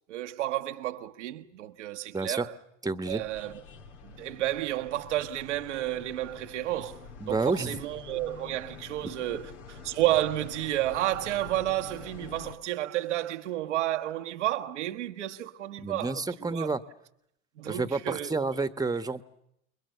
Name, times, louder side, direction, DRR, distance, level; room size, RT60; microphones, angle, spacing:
voice 1, 0.1-2.5 3.1-3.6 4.0-16.7 17.6-18.6, right 14 dB, 80° right, 1.3 m, -31 dB
voice 2, 2.1-2.4 2.8-3.2 7.2-7.8 15.8-16.8 17.6-19.2, right 3 dB, 10° right, 1.3 m, -29 dB
sound 1, 3.0-12.5, left 5 dB, 75° left, 2.9 m, -47 dB
29.0 x 22.0 x 6.9 m
hypercardioid pair, 70°, 35 cm